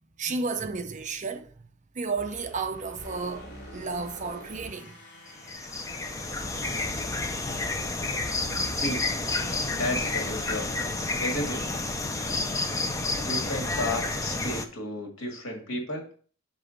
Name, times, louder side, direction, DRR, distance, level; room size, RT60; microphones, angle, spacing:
voice 1, 0.0-1.5 1.9-5.0, right 4 dB, 35° right, 0.6 m, -32 dB
sound 1, 2.1-10.3, equal, 55° left, 2.6 m, -45 dB
sound 2, 5.3-14.7, left 3 dB, 15° left, 0.5 m, -30 dB
voice 2, 8.8-9.1 9.8-10.9 11.2-11.7 12.2-12.5 12.9-13.0 13.2-16.1, left 1 dB, 80° left, 1.9 m, -33 dB
6.7 x 4.7 x 3.9 m
head